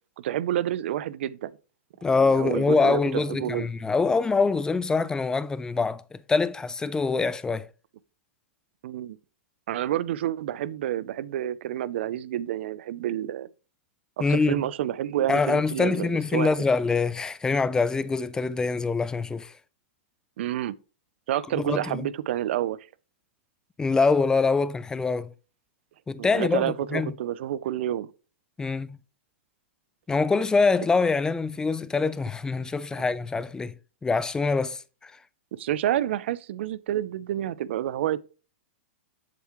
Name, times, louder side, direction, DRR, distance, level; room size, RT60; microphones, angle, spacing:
voice 1, 0.2-1.5 2.0-3.7 8.8-9.2 9.7-13.5 14.2-16.5 20.4-20.8 21.3-22.8 26.2-28.1 35.5-38.2, right 12 dB, 65° right, 0.5 m, -29 dB
voice 2, 2.0-6.0 6.3-7.7 14.2-14.6 15.3-19.5 21.5-22.1 23.8-25.3 26.1-27.1 28.6-29.0 30.1-33.7 34.0-35.1, left 4 dB, 10° left, 0.4 m, -24 dB
7.6 x 7.1 x 3.1 m
hypercardioid pair, 125°, 7 cm